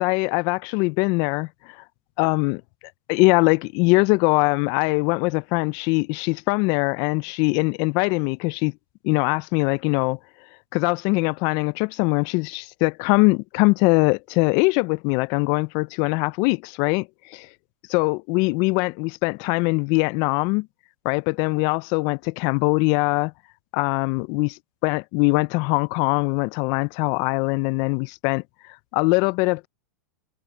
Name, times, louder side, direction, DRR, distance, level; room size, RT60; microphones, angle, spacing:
voice 1, 0.0-1.8 2.2-2.6 3.1-8.7 9.0-10.2 10.7-17.5 17.9-20.7 21.0-23.3 23.7-28.4 28.9-29.7, left 27 dB, 45° left, 0.4 m, -22 dB
hypercardioid pair, 130°, 9 cm